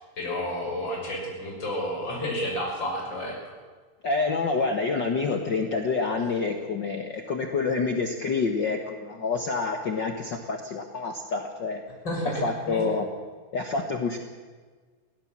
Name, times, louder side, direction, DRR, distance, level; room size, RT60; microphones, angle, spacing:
voice 1, 0.0-3.3 12.0-12.8, equal, 30° left, -2 dB, 6.8 m, -31 dB
voice 2, 4.0-11.8 12.4-13.1 13.5-14.2, left 4 dB, 80° left, 4 dB, 1.0 m, -27 dB
21.5 x 16.5 x 7.5 m, 1.5 s
omnidirectional pair, 4.3 m